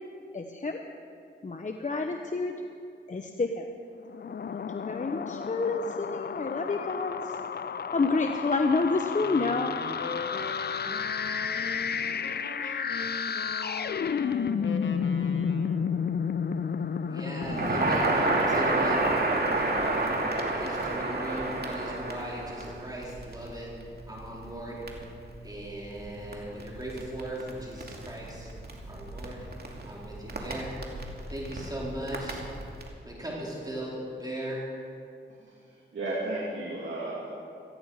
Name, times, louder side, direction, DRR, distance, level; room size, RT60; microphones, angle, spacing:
voice 1, 0.3-0.8 1.4-2.5 3.1-3.7 4.7-7.3 7.9-9.8, left 3 dB, 40° left, 4 dB, 1.0 m, -29 dB
sound 1, 4.1-20.4, left 6 dB, 55° left, 0.6 m, -32 dB
sound 2, 9.1-16.0, left 4 dB, 75° left, 1.2 m, -40 dB
voice 2, 17.0-20.3 20.6-23.7 24.1-24.8 25.4-28.5 28.9-29.5 29.8-30.7 31.3-32.4 33.0-34.7, right 1 dB, 20° right, -5 dB, 4.3 m, -38 dB
Crackle, 17.4-32.9, right 2 dB, 55° right, 2.5 m, -31 dB
voice 3, 35.3-37.5, right 2 dB, 75° right, -5 dB, 2.7 m, -35 dB
18.0 x 14.5 x 4.9 m, 2.4 s
cardioid pair, 55°, 20 cm